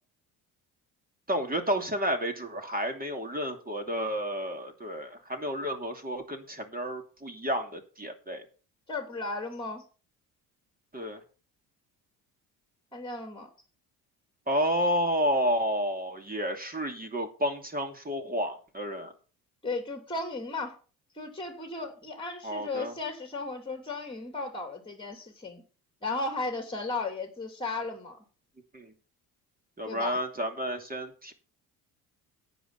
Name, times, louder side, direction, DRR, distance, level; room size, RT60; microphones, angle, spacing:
voice 1, 1.3-8.4 10.9-11.2 14.5-19.1 22.4-22.9 28.7-28.9 29.8-31.3, equal, 20° right, 5 dB, 2.7 m, -31 dB
voice 2, 8.9-9.8 12.9-13.5 19.6-20.8 21.2-25.6 26.0-28.2 29.9-30.2, left 3 dB, 10° left, 5 dB, 2.8 m, -35 dB
10.0 x 8.7 x 5.7 m, 0.37 s
hypercardioid pair, 65°, 45 cm